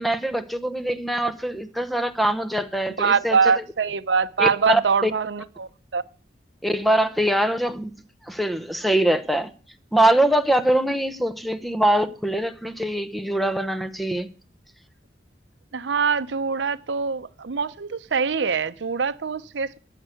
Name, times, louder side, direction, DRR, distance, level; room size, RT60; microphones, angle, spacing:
voice 1, 0.0-3.6 4.4-5.1 6.6-7.9 8.3-9.5 9.9-14.3, right 1 dB, ahead, 0.9 m, -23 dB
voice 2, 3.0-6.0 15.7-19.8, right 5 dB, 75° right, 0.6 m, -23 dB
13.5 x 6.7 x 9.1 m
head